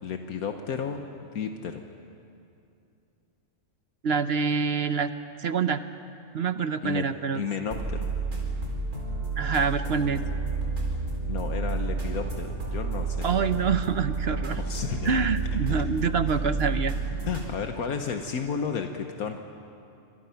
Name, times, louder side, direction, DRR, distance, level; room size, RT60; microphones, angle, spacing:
voice 1, 0.0-1.8 6.8-7.1 7.3-8.1 11.3-13.6 14.5-15.2 15.7-15.8 17.2-19.5, left 6 dB, 80° left, 5 dB, 1.5 m, -33 dB
voice 2, 4.0-5.1 5.4-5.8 6.3-7.5 9.4-10.2 13.2-14.6 15.0-17.0, right 6 dB, 55° right, 11 dB, 0.9 m, -26 dB
sound 1, 7.7-17.5, right 3 dB, 85° right, 5.0 m, -30 dB
26.0 x 26.0 x 5.8 m, 2.6 s
omnidirectional pair, 1.5 m